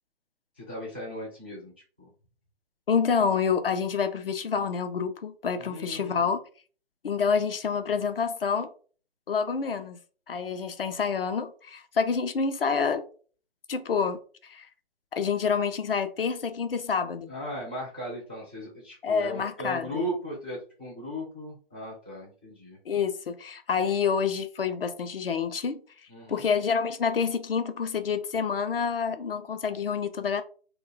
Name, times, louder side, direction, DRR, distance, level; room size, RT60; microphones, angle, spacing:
voice 1, 0.6-1.7 2.0-2.1 5.6-6.3 17.3-22.8 26.1-26.5, equal, 10° right, 0.4 m, -37 dB
voice 2, 2.9-6.4 7.0-8.7 9.3-10.0 10.3-13.0 13.7-14.7 15.1-17.3 19.0-20.0 22.9-25.8 26.3-30.4, left 6 dB, 65° left, 0.5 m, -28 dB
2.2 x 2.2 x 3.7 m
figure-of-eight pair, 150°, 31 cm